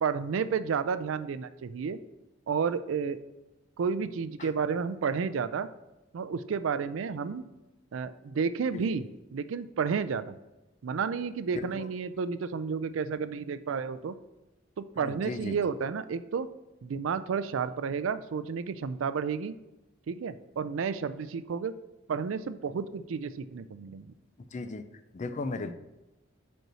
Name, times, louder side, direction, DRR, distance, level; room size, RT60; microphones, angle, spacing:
voice 1, 0.0-2.0 2.5-3.2 3.8-5.7 6.1-7.4 7.9-10.3 10.8-14.1 14.8-16.5 16.8-19.6 20.1-21.7 22.1-24.1, right 6 dB, 75° right, 12 dB, 0.4 m, -31 dB
voice 2, 11.5-11.9 15.0-15.6 24.5-24.8 25.1-25.7, left 3 dB, 40° left, 9 dB, 0.4 m, -36 dB
5.4 x 4.4 x 6.2 m, 0.98 s
head